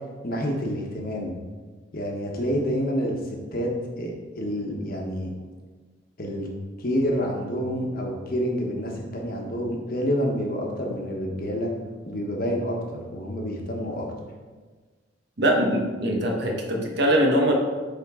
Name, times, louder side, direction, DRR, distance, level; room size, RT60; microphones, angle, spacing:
voice 1, 0.2-1.4 1.9-5.3 6.2-6.5 6.8-11.7 12.0-14.1, equal, 50° left, 0 dB, 1.1 m, -28 dB
voice 2, 15.4-17.5, equal, 60° right, 1 dB, 1.2 m, -22 dB
8.8 x 3.8 x 3.7 m, 1.4 s
head